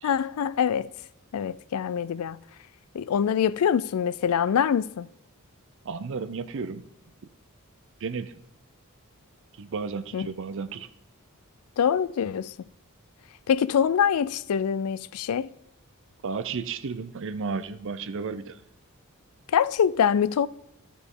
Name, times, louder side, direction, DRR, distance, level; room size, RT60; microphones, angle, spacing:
voice 1, 0.0-0.9 1.3-2.4 2.9-5.1 10.1-10.3 11.8-12.5 13.5-15.5 19.5-20.5, left 8 dB, 75° left, 0.4 m, -24 dB
voice 2, 5.9-6.8 8.0-8.3 9.6-10.9 16.2-18.6, right 5 dB, 60° right, 0.5 m, -33 dB
12.0 x 6.2 x 3.7 m
head